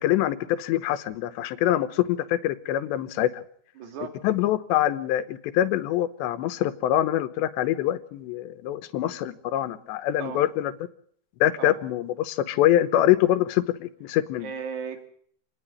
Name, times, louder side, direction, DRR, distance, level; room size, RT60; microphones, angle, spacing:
voice 1, 0.0-3.4 4.2-10.7 11.4-14.5, left 13 dB, 85° left, 12 dB, 3.2 m, -24 dB
voice 2, 3.8-4.2 10.2-10.4 11.6-11.8 14.4-15.1, right 6 dB, 50° right, 6 dB, 3.5 m, -35 dB
28.5 x 9.9 x 10.0 m, 0.63 s
omnidirectional pair, 4.9 m